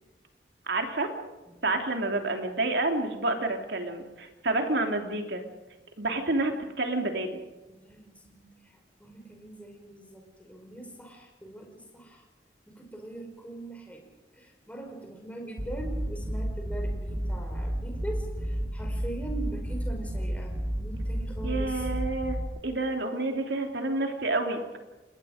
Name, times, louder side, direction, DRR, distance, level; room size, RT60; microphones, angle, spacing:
voice 1, 0.7-1.1 1.6-5.4 6.0-7.4 21.4-22.4 22.6-24.8, right 2 dB, 75° right, 4 dB, 3.1 m, -29 dB
voice 2, 7.7-8.5 9.0-12.2 12.7-14.0 14.3-21.9, right 2 dB, 10° left, 2 dB, 5.0 m, -42 dB
sound 1, 15.6-22.4, equal, 20° right, 4.3 m, -32 dB
28.5 x 20.5 x 5.1 m, 1.1 s
head